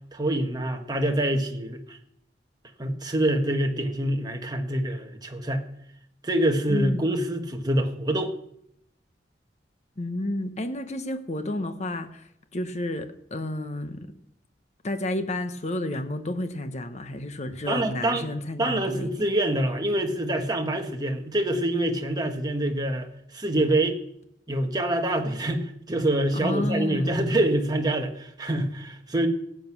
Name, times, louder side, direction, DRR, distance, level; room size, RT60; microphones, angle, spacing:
voice 1, 0.1-2.0 2.8-5.6 6.2-8.3 17.7-18.3 18.6-24.0 24.5-29.3, right 1 dB, 25° right, 4 dB, 1.4 m, -26 dB
voice 2, 6.7-7.1 10.0-14.1 14.8-19.2 26.3-27.3, left 1 dB, 40° left, 9 dB, 1.2 m, -31 dB
17.0 x 7.8 x 6.1 m, 0.73 s
head